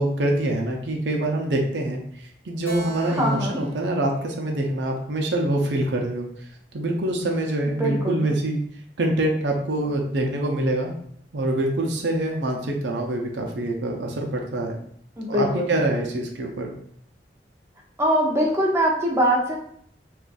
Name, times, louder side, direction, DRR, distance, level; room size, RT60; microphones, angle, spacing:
voice 1, 0.0-6.3 6.7-8.6 9.0-10.9 11.3-14.8 15.3-16.7, right 1 dB, 75° right, 2 dB, 0.6 m, -25 dB
Keyboard (musical), 2.6-6.1, right 2 dB, 10° left, 0.8 m, -43 dB
voice 2, 3.2-3.6 7.8-8.3 15.2-15.7 18.0-19.6, equal, 15° right, -2 dB, 0.6 m, -22 dB
2.5 x 2.4 x 3.9 m, 0.65 s
head